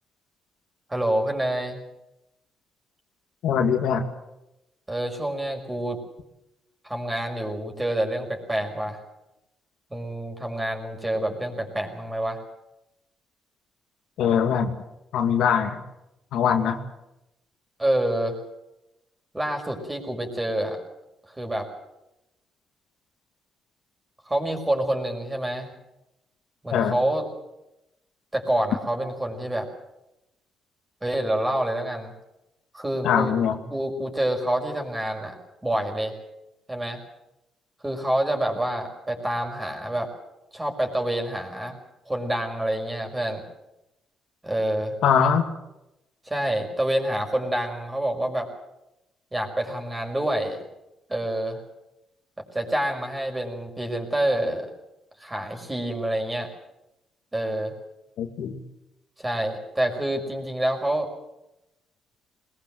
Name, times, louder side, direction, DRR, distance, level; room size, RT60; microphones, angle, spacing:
voice 1, 0.9-1.8 4.9-6.0 6.8-9.0 9.9-12.4 17.8-18.4 19.3-20.8 21.3-21.7 24.3-25.7 26.6-27.2 28.3-29.7 31.0-32.1 32.7-33.3 33.7-35.4 35.6-36.1 36.7-37.0 37.8-40.1 40.5-41.8 42.1-43.4 44.4-45.0 46.2-48.5 49.3-50.6 51.1-51.6 52.5-54.7 55.2-56.5 57.3-57.7 59.2-61.1, right 1 dB, 15° right, 3 dB, 5.5 m, -27 dB
voice 2, 3.4-4.1 14.2-14.8 15.1-15.8 16.3-16.8 26.7-27.0 33.0-33.6 45.0-45.4 58.2-58.6, left 7 dB, 80° left, 5 dB, 2.1 m, -22 dB
21.0 x 21.0 x 7.8 m, 0.91 s
cardioid pair, 90°, 0 cm